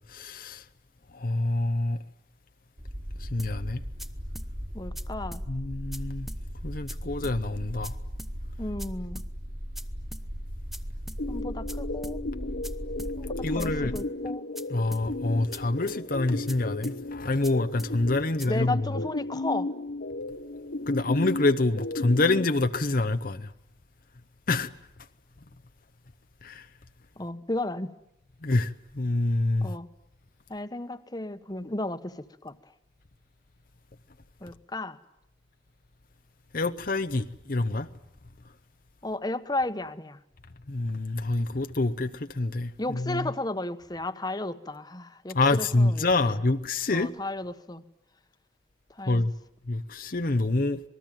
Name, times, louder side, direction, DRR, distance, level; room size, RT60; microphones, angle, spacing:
voice 1, 0.1-0.6 1.1-2.0 3.2-3.8 5.5-6.3 6.6-8.0 13.4-13.9 14.7-19.0 20.9-23.5 24.5-24.7 26.4-26.6 28.4-29.7 36.5-37.9 40.7-43.3 45.3-47.1 49.1-49.3 49.7-50.8, left 2 dB, 50° left, 0.9 m, -26 dB
sound 1, 2.8-14.0, equal, 50° right, 3.6 m, -37 dB
sound 2, 3.4-3.5 4.0-4.1 4.4-4.5 5.0-5.1 5.3-5.5 5.9-6.0 6.3-6.4 6.9-7.0 7.2-7.4 7.8-7.9 8.2-8.3 8.8-8.9 9.2-9.3 9.8-9.9 10.1-10.3 10.7-10.8 11.1-11.2 11.7-11.8 12.0-12.2 12.6-12.7 13.0-13.1 13.6-13.7 14.0-14.1 14.6-14.7 14.9-15.1 15.5-15.6 15.9-16.0 16.5-16.6 16.8-17.0 17.4-17.5 17.8-17.9 18.4-18.5, equal, ahead, 0.9 m, -42 dB
voice 2, 4.7-5.4 8.6-9.2 11.3-12.2 13.2-14.4 18.5-19.7 27.2-27.9 29.6-29.9 30.5-32.5 34.4-35.0 39.0-40.2 42.8-46.3 46.9-47.8 49.0-49.3, left 2 dB, 20° left, 1.3 m, -34 dB
sound 3, 11.2-22.5, left 2 dB, 70° left, 1.1 m, -35 dB
27.0 x 20.0 x 9.1 m
head